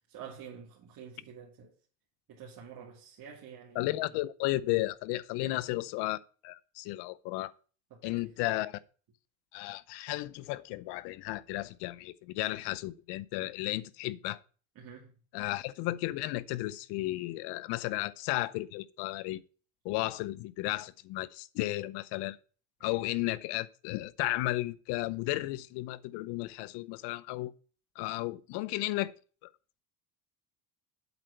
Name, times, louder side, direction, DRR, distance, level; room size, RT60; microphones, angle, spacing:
voice 1, 0.1-1.7 2.3-4.0 5.4-5.5 7.9-8.3 14.8-15.1 22.8-22.9, right 7 dB, 55° right, 2.4 m, -48 dB
voice 2, 3.7-6.2 6.4-7.5 8.0-8.8 9.5-14.4 15.3-19.4 19.8-22.4 22.8-27.5 28.0-29.1 29.4-29.5, left 18 dB, 80° left, 0.7 m, -34 dB
8.2 x 4.4 x 6.6 m
cardioid pair, 105°, 40 cm